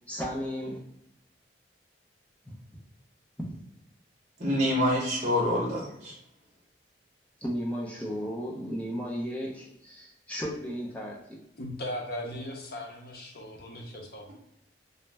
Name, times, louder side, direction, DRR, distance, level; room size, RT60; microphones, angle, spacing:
voice 1, 0.1-0.8 3.4-3.6 7.4-11.4, equal, 10° left, -3 dB, 0.4 m, -34 dB
voice 2, 4.4-6.1, left 1 dB, 40° right, -5 dB, 0.9 m, -26 dB
voice 3, 11.6-14.3, left 1 dB, 55° left, 0 dB, 0.6 m, -38 dB
2.4 x 2.1 x 3.2 m, 0.81 s
head